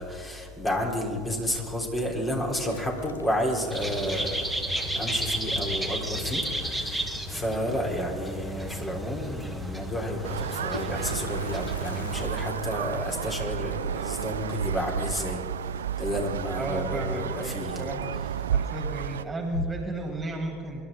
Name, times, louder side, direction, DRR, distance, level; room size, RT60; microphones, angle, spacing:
voice 1, 0.0-4.5 5.0-15.4 16.0-17.8, equal, 20° left, 0 dB, 3.8 m, -31 dB
Toilet flush, 2.4-5.1 5.4-5.5 5.7-5.8 6.1-6.5 8.2-8.3 8.7-8.8 10.3-17.0 17.3-17.7 18.2-18.7 19.1-20.1, left 4 dB, 85° left, 0.7 m, -44 dB
sound 1, 3.7-12.2, right 1 dB, 5° left, 2.2 m, -33 dB
sound 2, 10.2-19.2, right 8 dB, 80° right, 0.3 m, -32 dB
voice 2, 16.6-18.1 18.5-20.8, right 2 dB, 20° right, 2 dB, 2.9 m, -34 dB
27.0 x 12.0 x 3.8 m, 2.2 s
hypercardioid pair, 75°, 0 cm